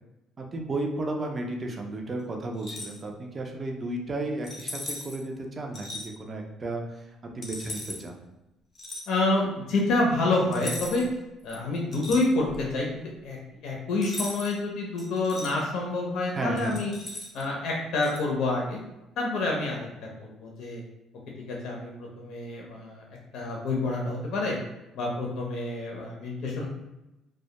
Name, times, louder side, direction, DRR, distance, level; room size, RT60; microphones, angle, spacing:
voice 1, 0.4-7.1 7.3-8.2 16.3-16.8, right 2 dB, 30° right, 2 dB, 0.4 m, -33 dB
sound 1, 2.5-3.0 4.4-5.2 5.7-6.1 7.4-8.0 8.7-9.1 10.5-11.1 11.5-12.7 14.0-14.6 15.0-15.5 16.6-17.4 18.0-18.2, left 2 dB, 30° left, 0.6 m, -38 dB
voice 2, 9.1-11.0 11.4-16.9 17.3-18.8 19.2-20.8 21.5-23.0 23.3-24.6 24.9-26.7, left 2 dB, 75° left, -2 dB, 0.5 m, -28 dB
2.1 x 2.1 x 2.8 m, 0.95 s
cardioid pair, 95°, 0 cm